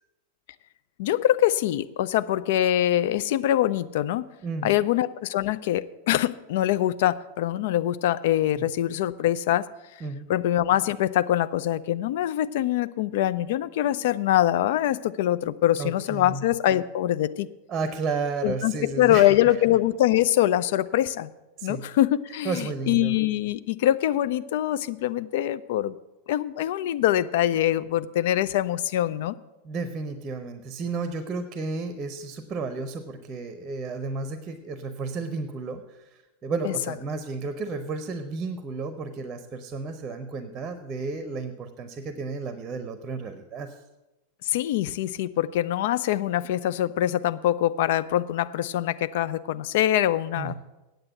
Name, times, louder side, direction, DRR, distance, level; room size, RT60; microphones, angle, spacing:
voice 1, 1.0-4.3 4.6-9.7 10.3-17.5 18.4-21.3 21.6-26.0 26.3-29.4 36.6-36.7 44.4-50.5, left 13 dB, 55° left, 15 dB, 0.4 m, -24 dB
voice 2, 4.4-4.8 8.6-8.7 10.0-10.3 15.8-16.5 17.7-19.3 21.6-21.9 22.4-23.2 29.6-43.7 50.4-50.5, right 4 dB, 25° right, 10 dB, 0.8 m, -32 dB
8.8 x 7.9 x 7.7 m, 1.0 s
figure-of-eight pair, 90°, 0 cm